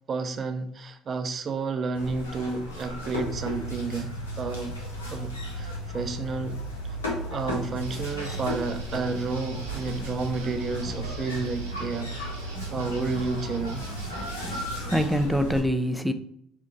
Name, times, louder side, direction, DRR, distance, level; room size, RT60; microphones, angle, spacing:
voice 1, 0.1-4.8 5.1-6.6 7.3-12.1 12.4-14.1, right 4 dB, 45° right, 0.6 m, -31 dB
sound 1, 1.9-15.6, equal, 90° left, 1.0 m, -34 dB
sound 2, 7.8-14.7, right 3 dB, 85° right, 1.0 m, -44 dB
voice 2, 14.4-16.1, equal, 5° right, 0.5 m, -25 dB
5.1 x 2.7 x 3.8 m
hypercardioid pair, 60°, 0 cm